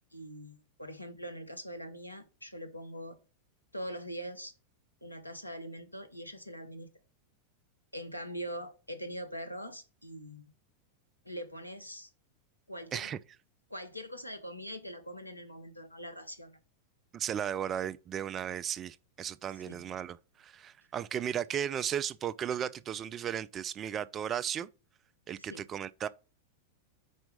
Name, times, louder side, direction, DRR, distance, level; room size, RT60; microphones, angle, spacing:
voice 1, 0.1-3.2 3.7-4.5 5.0-6.9 7.9-10.5 11.2-12.1 12.7-13.1 13.7-16.6 19.7-19.8 25.4-25.6, equal, 85° left, 0.8 m, -42 dB
voice 2, 17.1-24.7 25.3-26.1, right 9 dB, 25° right, 0.3 m, -35 dB
5.4 x 4.4 x 5.2 m
figure-of-eight pair, 90°, 0 cm